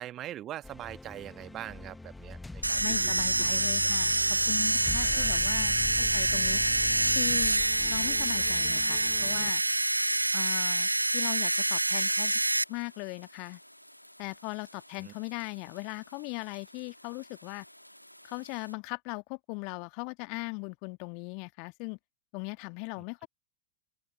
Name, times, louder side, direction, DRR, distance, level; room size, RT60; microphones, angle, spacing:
voice 1, 0.0-3.5 5.0-5.3 15.0-15.1, right 12 dB, 30° right, 1.6 m, -42 dB
sound 1, 0.6-9.5, left 2 dB, 5° left, 1.1 m, -42 dB
sound 2, 2.6-18.8, equal, 90° left, 1.8 m, -54 dB
sound 3, 2.6-12.6, right 2 dB, 85° right, 0.4 m, -26 dB
voice 2, 2.8-4.2 4.5-6.6 7.1-7.6 7.9-9.6 10.3-12.4 12.7-13.6 14.2-17.6 18.2-22.0 22.3-23.3, left 39 dB, 45° left, 1.6 m, -39 dB
open air
figure-of-eight pair, 90°, 0 cm